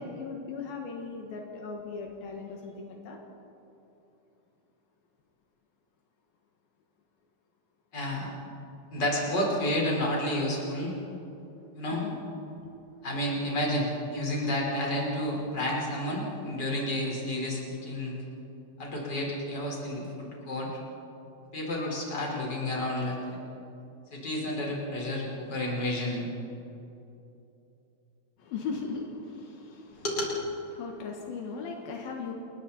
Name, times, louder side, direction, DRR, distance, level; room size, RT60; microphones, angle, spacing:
voice 1, 0.0-3.2 11.9-12.2 12.6-12.7 28.4-30.0 30.7-32.3, left 4 dB, 75° left, 1 dB, 3.3 m, -38 dB
voice 2, 7.9-8.3 8.9-10.9 11.7-12.0 13.0-18.1 18.8-20.7 21.5-23.4 24.1-26.3 30.0-30.3, left 1 dB, 25° left, -2 dB, 5.1 m, -30 dB
29.0 x 22.0 x 4.3 m, 2.9 s
omnidirectional pair, 4.3 m